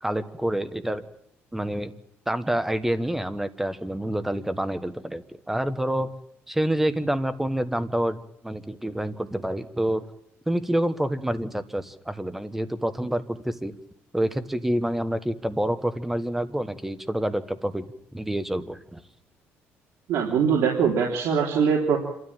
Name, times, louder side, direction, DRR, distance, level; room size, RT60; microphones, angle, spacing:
voice 1, 0.0-1.0 1.5-1.9 2.3-6.1 6.5-10.0 10.5-13.8 14.1-17.9 18.1-19.0, right 1 dB, 5° right, 11 dB, 1.2 m, -27 dB
voice 2, 20.1-22.0, right 6 dB, 70° right, -1 dB, 3.6 m, -22 dB
27.0 x 13.0 x 9.0 m, 0.75 s
cardioid pair, 140°, 5 cm